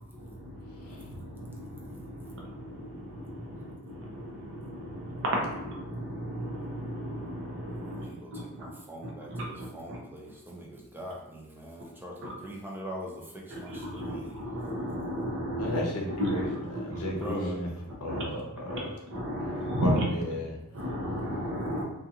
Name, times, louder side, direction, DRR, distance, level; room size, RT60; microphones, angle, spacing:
voice 1, 0.0-8.1 8.3-8.4 9.0-10.0 12.2-12.3 13.5-15.8 16.2-17.0 18.1-18.2 18.7-18.8 19.1-20.0 20.7-21.8, equal, 60° right, -2 dB, 0.7 m, -34 dB
voice 2, 0.7-1.1 15.6-17.7 18.0-18.9 19.8-20.6, equal, 70° left, -1 dB, 0.6 m, -33 dB
voice 3, 7.8-14.3 17.2-17.5, equal, 10° right, -3 dB, 0.4 m, -42 dB
2.4 x 2.3 x 2.7 m, 0.87 s
head